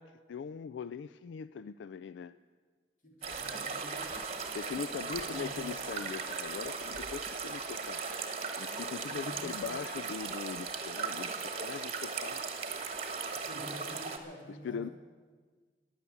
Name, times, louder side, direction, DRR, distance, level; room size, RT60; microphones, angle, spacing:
voice 1, 0.0-2.4 4.5-8.0 8.6-12.4 14.5-14.9, left 6 dB, 85° left, 15 dB, 0.3 m, -41 dB
voice 2, 3.0-4.2 5.1-5.5 9.1-9.8 13.3-14.9, left 1 dB, 45° left, -1 dB, 3.3 m, -48 dB
sound 1, 3.2-14.2, right 5 dB, 35° right, 1.3 m, -38 dB
15.5 x 10.5 x 7.1 m, 1.5 s
head